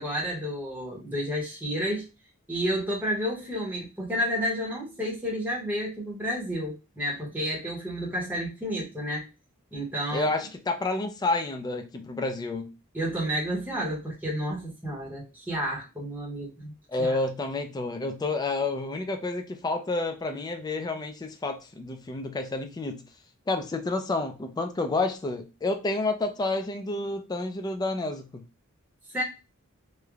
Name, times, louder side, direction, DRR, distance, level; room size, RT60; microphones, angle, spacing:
voice 1, 0.0-2.1 2.5-9.3 9.7-10.3 12.9-16.7 17.0-17.2 29.1-29.2, equal, 10° right, -3 dB, 0.8 m, -31 dB
voice 2, 10.1-12.7 16.9-23.0 23.5-28.4, left 2 dB, 20° left, 5 dB, 0.3 m, -29 dB
3.1 x 2.0 x 2.3 m, 0.28 s
head